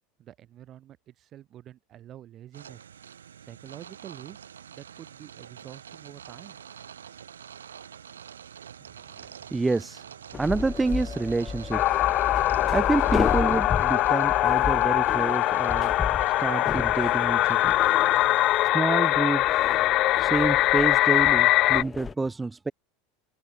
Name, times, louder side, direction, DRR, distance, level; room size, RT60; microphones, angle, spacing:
voice 1, 0.2-2.8 3.4-4.4 4.7-6.7, right 12 dB, 40° right, 2.9 m, -47 dB
sound 1, 2.5-18.7, right 8 dB, 90° right, 1.2 m, -46 dB
voice 2, 9.5-10.0 10.4-12.0 12.4-15.9 16.4-17.8 18.7-19.6 20.2-22.7, right 3 dB, 15° right, 0.4 m, -28 dB
sound 2, 10.3-22.1, left 5 dB, 20° left, 1.8 m, -34 dB
sound 3, 11.7-21.8, left 16 dB, 50° left, 0.5 m, -22 dB
hypercardioid pair, 90°, 0 cm